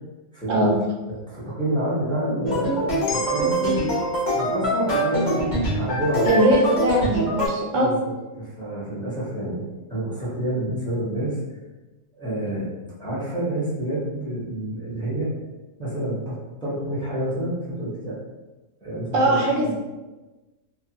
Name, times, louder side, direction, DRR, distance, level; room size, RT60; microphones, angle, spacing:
voice 1, 0.3-0.8 1.3-3.8 4.3-6.5 7.7-9.6 9.9-11.4 12.1-12.7 13.0-15.3 15.8-18.2 18.8-19.7, right 1 dB, 5° left, -9 dB, 0.5 m, -28 dB
sound 1, 2.5-7.5, right 1 dB, 35° left, 0.8 m, -24 dB
sound 2, 3.1-7.3, left 5 dB, 75° left, 1.1 m, -39 dB
voice 2, 6.2-7.9 19.1-19.7, right 1 dB, 65° right, -2 dB, 0.8 m, -20 dB
3.1 x 2.2 x 2.8 m, 1.1 s
omnidirectional pair, 1.7 m